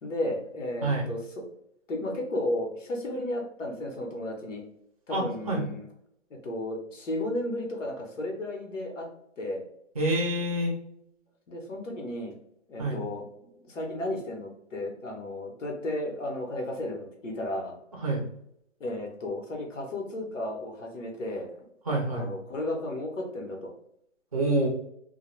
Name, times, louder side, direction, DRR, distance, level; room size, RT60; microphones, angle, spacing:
voice 1, 0.0-1.4 1.9-4.6 5.1-5.8 6.3-9.1 9.4-9.7 11.5-12.4 12.7-13.3 13.7-17.8 18.8-21.5 22.1-23.7, left 1 dB, 80° left, 1 dB, 1.0 m, -33 dB
voice 2, 5.1-5.6 10.0-10.8 12.8-13.0 18.0-18.2 21.9-22.3 24.3-24.7, right 1 dB, 30° right, -1 dB, 0.5 m, -27 dB
2.3 x 2.2 x 3.0 m, 0.74 s
hypercardioid pair, 170°, 37 cm